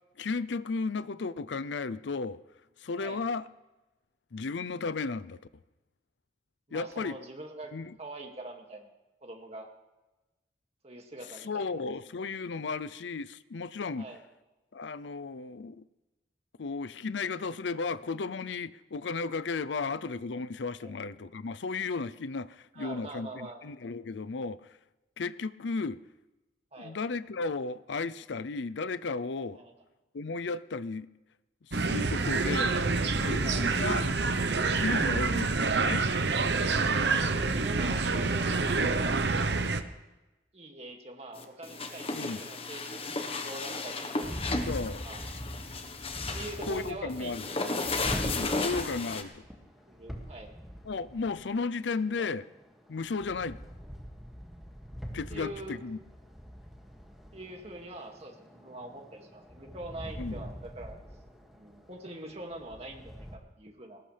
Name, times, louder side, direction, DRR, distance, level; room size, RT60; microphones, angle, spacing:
voice 1, 0.2-2.4 2.8-3.5 4.3-5.4 6.7-7.2 7.7-7.9 11.4-14.1 14.7-15.8 16.6-24.8 25.2-26.0 26.8-29.6 30.1-31.1 31.7-32.7 33.2-34.1 34.7-36.1 38.7-38.9 42.1-42.4 44.7-45.1 46.7-47.5 48.2-49.3 50.8-52.5 52.9-53.6 55.1-56.0 60.2-60.4, left 4 dB, 85° left, 0.5 m, -34 dB
voice 2, 6.7-7.7 8.0-8.9 9.2-9.7 10.8-11.7 13.9-14.2 20.8-20.9 22.7-23.6 26.7-27.0 29.5-29.7 33.4-33.7 37.0-39.2 40.5-44.2 45.0-45.3 46.3-47.6 48.1-48.6 49.9-50.5 52.1-52.3 55.3-55.8 57.3-61.0 61.5-64.0, right 2 dB, 35° right, 2.2 m, -44 dB
sound 1, 31.7-39.8, right 3 dB, 70° right, 0.9 m, -27 dB
sound 2, 41.4-49.2, left 3 dB, 30° left, 1.2 m, -34 dB
sound 3, 44.2-63.4, equal, ahead, 2.1 m, -43 dB
21.5 x 18.5 x 3.4 m
head